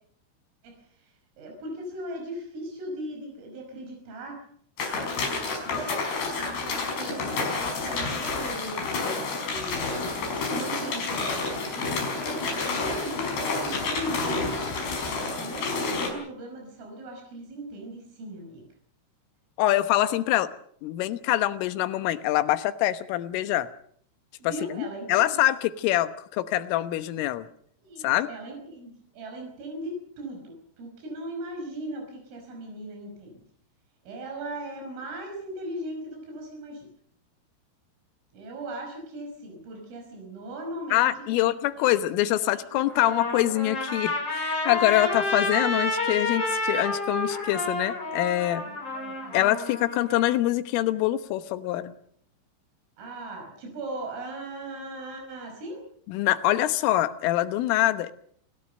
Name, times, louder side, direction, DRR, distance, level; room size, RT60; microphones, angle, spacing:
voice 1, 1.4-4.4 4.9-5.9 6.3-9.9 10.2-14.6 15.0-18.7 24.4-25.4 27.8-33.4 34.0-36.9 38.3-41.5 42.7-42.8 48.6-49.4 53.0-55.8, right 1 dB, 90° right, 2 dB, 8.0 m, -39 dB
sound 1, 4.8-16.1, left 3 dB, 55° left, 7.0 m, -29 dB
voice 2, 19.6-20.5 20.8-23.7 24.4-27.5 28.0-28.3 40.9-48.6 49.3-51.9 56.1-58.1, left 14 dB, 90° left, 12 dB, 3.7 m, -25 dB
Trumpet, 42.9-50.3, left 2 dB, 30° left, 8.2 m, -30 dB
29.0 x 17.5 x 6.7 m, 0.63 s
omnidirectional pair, 5.6 m